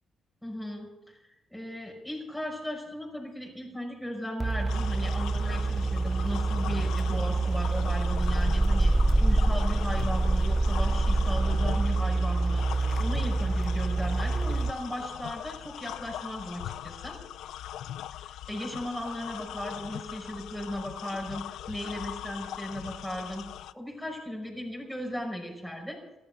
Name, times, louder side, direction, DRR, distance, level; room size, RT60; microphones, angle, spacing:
voice 1, 0.4-1.2 1.5-8.9 9.2-17.2 18.2-23.5 23.7-26.0, equal, ahead, -1 dB, 5.7 m, -36 dB
sound 1, 4.4-14.7, right 2 dB, 15° right, 0.7 m, -26 dB
sound 2, 4.7-23.7, left 12 dB, 80° left, 0.5 m, -40 dB
sound 3, 6.2-11.4, left 1 dB, 20° left, 3.1 m, -45 dB
15.0 x 11.5 x 6.9 m, 0.97 s
cardioid pair, 90°, 0 cm